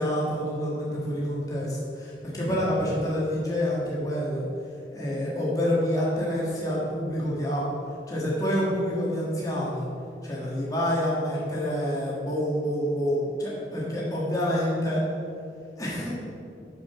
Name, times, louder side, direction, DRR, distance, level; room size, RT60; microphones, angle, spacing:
voice 1, 0.0-4.4 4.9-7.6 8.1-9.9 10.2-15.0 15.8-16.1, equal, 20° left, -6 dB, 1.6 m, -27 dB
6.9 x 6.0 x 6.0 m, 2.4 s
head